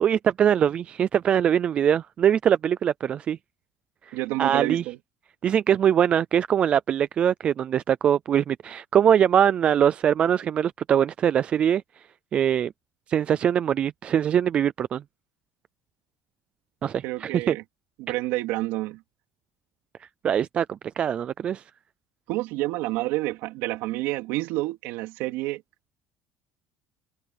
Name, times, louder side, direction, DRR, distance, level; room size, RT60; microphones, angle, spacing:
voice 1, 0.0-3.4 4.1-4.8 5.4-11.8 12.3-12.7 13.1-15.0 16.8-17.6 20.2-21.6, right 9 dB, 25° right, 0.3 m, -22 dB
voice 2, 4.1-5.0 17.0-17.6 18.0-19.0 22.3-25.6, right 19 dB, 70° right, 3.6 m, -29 dB
cardioid pair, 180°, 4 cm